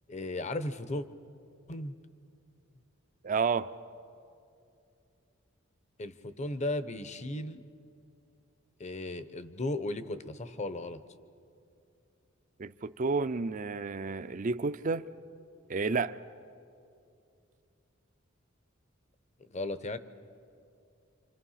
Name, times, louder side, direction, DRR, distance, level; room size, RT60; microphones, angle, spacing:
voice 1, 0.1-1.1 1.7-1.9 6.0-7.6 8.8-11.0 19.4-20.0, left 2 dB, 35° left, 0.8 m, -35 dB
voice 2, 3.2-3.7 12.6-15.1 15.7-16.2, right 4 dB, 40° right, 0.5 m, -30 dB
27.0 x 26.0 x 5.7 m
head